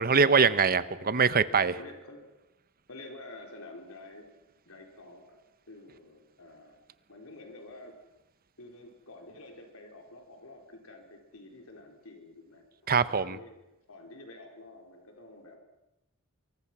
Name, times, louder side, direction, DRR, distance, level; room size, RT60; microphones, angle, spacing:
voice 1, 0.0-1.7 12.9-13.4, right 5 dB, 45° right, 14 dB, 1.0 m, -23 dB
voice 2, 1.7-2.3 2.9-4.4 4.7-5.4 5.7-6.8 7.1-8.0 8.6-12.6 13.2-13.6 13.9-15.6, left 2 dB, 70° left, 3 dB, 4.4 m, -49 dB
26.0 x 23.5 x 6.2 m, 0.94 s
head